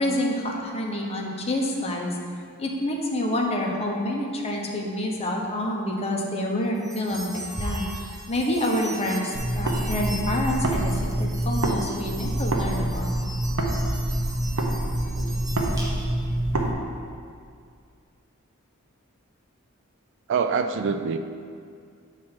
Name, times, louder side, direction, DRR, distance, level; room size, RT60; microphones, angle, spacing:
voice 1, 0.0-2.1 2.6-13.2, left 1 dB, 30° left, 0 dB, 0.8 m, -28 dB
sound 1, 6.8-16.3, right 1 dB, 20° right, 0.9 m, -38 dB
sound 2, 9.3-11.8 12.1-16.7, right 1 dB, 85° right, 0.8 m, -26 dB
voice 2, 20.3-21.2, right 5 dB, 60° right, 8 dB, 0.3 m, -24 dB
7.4 x 3.3 x 5.7 m, 2.3 s
head